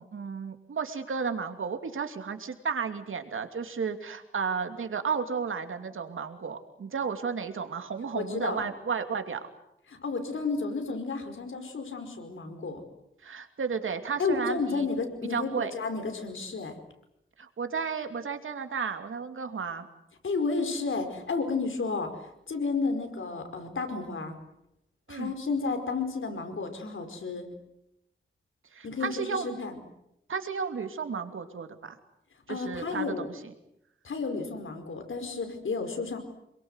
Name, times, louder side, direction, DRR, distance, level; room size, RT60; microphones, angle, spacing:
voice 1, 0.0-9.4 13.2-14.9 15.3-15.7 17.4-19.9 25.1-25.3 28.7-29.6 30.3-32.0 32.5-33.2, right 6 dB, 85° right, 7 dB, 2.7 m, -33 dB
voice 2, 8.1-8.7 9.9-12.8 14.2-16.7 20.2-24.3 25.1-27.5 28.8-29.7 32.5-33.3 34.0-36.2, left 4 dB, 80° left, 6 dB, 5.0 m, -32 dB
27.5 x 23.0 x 8.1 m, 0.82 s
wide cardioid pair, 80°, 20 cm